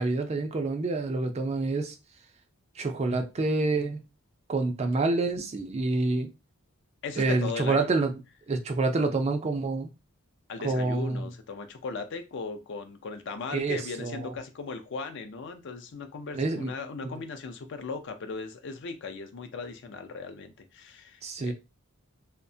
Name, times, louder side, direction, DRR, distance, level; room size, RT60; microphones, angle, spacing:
voice 1, 0.0-1.9 2.8-4.0 4.5-6.3 7.2-8.1 8.5-9.9 10.6-11.2 13.5-14.3 16.3-16.7 21.2-21.5, right 3 dB, 30° right, 0.3 m, -27 dB
voice 2, 7.0-7.9 10.5-21.5, left 4 dB, 55° left, 0.4 m, -38 dB
2.7 x 2.1 x 2.6 m
head